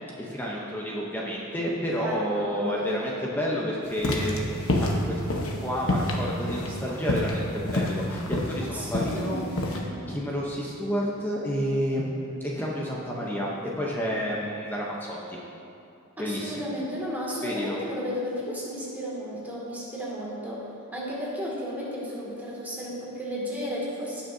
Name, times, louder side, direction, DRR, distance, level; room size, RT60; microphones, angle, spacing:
voice 1, 0.2-5.2 5.6-13.5 13.8-15.4 16.2-16.7 17.4-17.8, equal, 10° left, -4 dB, 0.8 m, -30 dB
voice 2, 2.0-3.1 8.6-9.9 16.2-24.2, equal, 10° right, -7 dB, 2.3 m, -34 dB
sound 1, 3.9-9.8, left 1 dB, 70° left, 1.1 m, -28 dB
18.0 x 6.3 x 2.8 m, 2.7 s
head